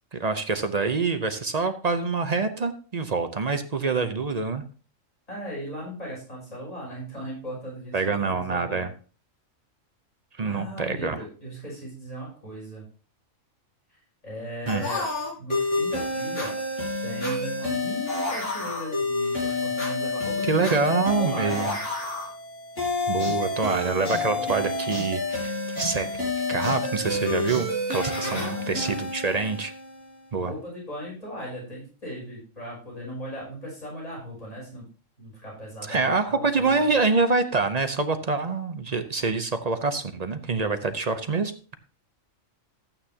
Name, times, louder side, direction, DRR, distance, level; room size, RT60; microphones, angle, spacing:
voice 1, 0.1-4.6 7.9-8.9 10.4-11.2 14.7-14.9 20.4-21.8 23.1-25.5 25.8-26.1 26.4-29.7 30.3-30.5 35.9-41.7, right 4 dB, 40° right, 9 dB, 0.6 m, -26 dB
voice 2, 5.3-8.9 10.4-12.8 14.2-15.1 15.4-16.6 17.0-20.8 21.2-21.8 24.3-24.5 28.1-29.0 30.4-34.8 35.2-36.9, equal, 30° left, -5 dB, 6.3 m, -37 dB
sound 1, 14.7-30.1, left 2 dB, 60° left, 5.6 m, -29 dB
13.0 x 8.9 x 2.8 m, 0.38 s
omnidirectional pair, 1.4 m